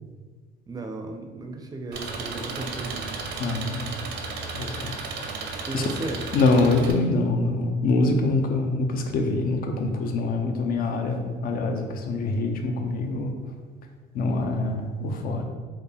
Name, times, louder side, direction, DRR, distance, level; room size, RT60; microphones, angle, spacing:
voice 1, 0.7-3.1 5.7-6.2, right 2 dB, 20° right, 4 dB, 0.4 m, -35 dB
Engine, 1.9-6.9, right 4 dB, 80° right, 0.6 m, -34 dB
voice 2, 3.4-4.0 4.5-5.0 5.7-5.8 6.3-13.3 14.1-15.5, left 2 dB, 60° left, 4 dB, 0.6 m, -24 dB
4.5 x 2.4 x 3.3 m, 1.4 s
cardioid pair, 110°, 17 cm